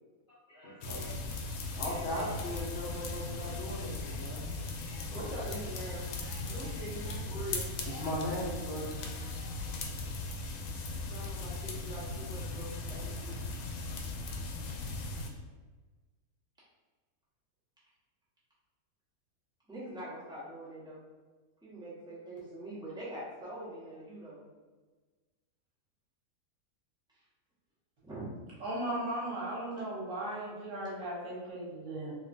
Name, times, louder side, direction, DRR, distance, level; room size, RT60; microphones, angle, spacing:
voice 1, 0.5-1.1 1.6-5.1 6.1-6.7 7.0-7.1 7.8-9.5, left 1 dB, 50° left, -8 dB, 0.7 m, -39 dB
sound 1, 0.8-15.3, left 3 dB, 85° left, 1.1 m, -38 dB
voice 2, 5.0-6.0 6.5-7.7 9.9-10.0 11.0-13.4 19.7-21.0 21.6-24.4 27.1-27.2 28.0-28.3, right 1 dB, 5° right, -10 dB, 1.0 m, -43 dB
voice 3, 28.6-32.2, right 1 dB, 60° right, -6 dB, 1.4 m, -37 dB
3.7 x 2.8 x 2.6 m, 1.4 s
omnidirectional pair, 1.6 m